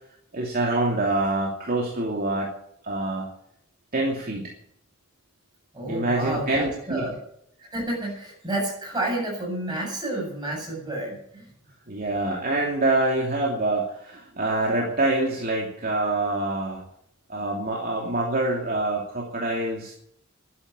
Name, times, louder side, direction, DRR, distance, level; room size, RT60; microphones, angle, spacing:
voice 1, 0.3-2.5 2.8-3.3 3.9-4.6 5.8-7.1 11.9-16.8 17.3-19.9, right 2 dB, 45° right, -2 dB, 2.9 m, -25 dB
voice 2, 5.7-7.2 7.7-11.5, right 1 dB, 20° right, -1 dB, 7.8 m, -30 dB
12.0 x 11.0 x 8.8 m, 0.71 s
head